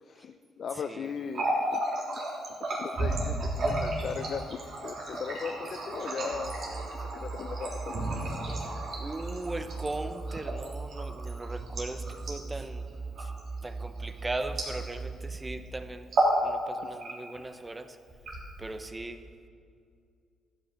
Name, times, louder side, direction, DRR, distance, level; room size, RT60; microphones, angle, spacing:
voice 1, 0.0-1.8 2.1-2.2 2.8-6.6 7.1-8.0, left 6 dB, 55° left, 8 dB, 0.5 m, -38 dB
voice 2, 0.8-1.1 8.5-8.6 9.0-12.9 13.2-13.3 13.6-16.1 16.4-18.0 18.6-19.3, right 2 dB, 20° right, 10 dB, 0.9 m, -38 dB
Water tap faucet, 1.2-15.2 15.5-15.7 16.0-16.4 16.8-17.4 18.1-18.9, right 1 dB, 60° right, 3.5 m, -33 dB
sound 1, 6.3-15.6, right 4 dB, 40° right, 1.7 m, -39 dB
13.5 x 9.0 x 6.6 m, 2.3 s
cardioid pair, 90°, 0 cm